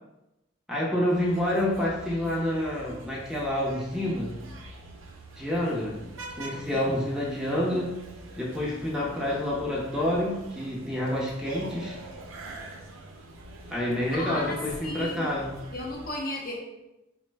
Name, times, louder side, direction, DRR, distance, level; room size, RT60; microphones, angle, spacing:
voice 1, 0.7-4.3 5.4-6.0 6.4-7.9 8.4-12.0 13.7-15.6, left 1 dB, 5° right, -4 dB, 0.5 m, -28 dB
sound 1, 1.1-16.1, right 2 dB, 90° right, 0.5 m, -44 dB
voice 2, 6.7-7.0 14.1-15.3 15.7-16.6, left 1 dB, 45° left, 0 dB, 0.6 m, -35 dB
4.1 x 2.0 x 3.2 m, 0.96 s
head